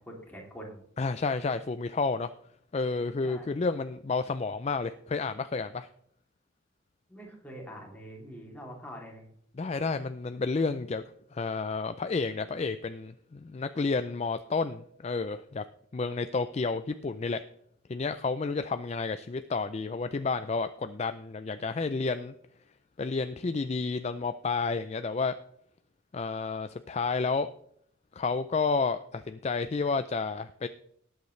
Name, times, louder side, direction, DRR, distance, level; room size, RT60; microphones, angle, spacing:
voice 1, 0.0-0.8 3.2-3.5 7.1-9.3, equal, 10° left, -2 dB, 2.8 m, -44 dB
voice 2, 1.0-2.3 2.7-5.9 9.6-11.0 11.3-15.6 15.9-17.4 17.9-22.3 23.0-25.4 26.1-27.5 28.1-30.7, left 4 dB, 30° left, 10 dB, 0.4 m, -30 dB
18.5 x 8.1 x 3.2 m, 0.68 s
head